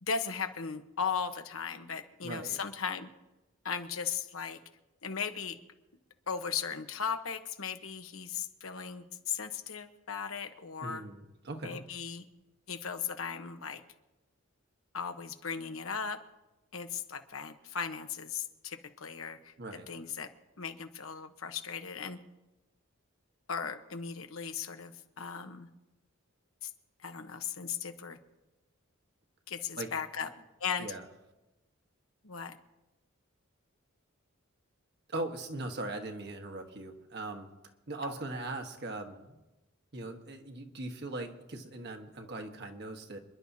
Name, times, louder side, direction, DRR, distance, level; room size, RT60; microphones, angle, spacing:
voice 1, 0.0-3.1 3.6-4.6 5.0-5.6 6.3-11.0 11.6-12.2 12.7-13.8 14.9-16.2 16.7-19.5 19.9-20.3 20.6-22.2 23.5-25.7 26.6-26.7 27.0-28.2 29.5-30.3 30.6-30.9 32.2-32.6 38.0-38.1, left 6 dB, 80° left, 7 dB, 1.1 m, -37 dB
voice 2, 2.2-2.6 10.8-11.8 19.6-19.9 29.8-29.9 30.8-31.0 35.1-37.5 37.9-39.4 39.9-43.2, right 2 dB, 55° right, 4 dB, 1.4 m, -40 dB
27.5 x 11.0 x 2.8 m, 1.0 s
head